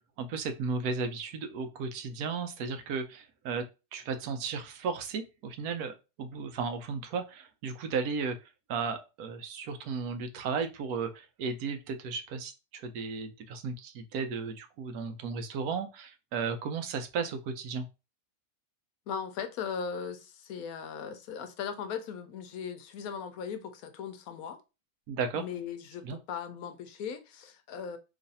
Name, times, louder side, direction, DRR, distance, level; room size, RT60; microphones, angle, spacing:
voice 1, 0.2-3.6 3.9-8.4 8.7-17.8 25.1-25.4 26.0-26.2, right 5 dB, 80° right, 1.1 m, -34 dB
voice 2, 19.1-24.6 25.3-28.0, left 7 dB, 75° left, 1.1 m, -38 dB
3.1 x 2.4 x 4.0 m
omnidirectional pair, 1.6 m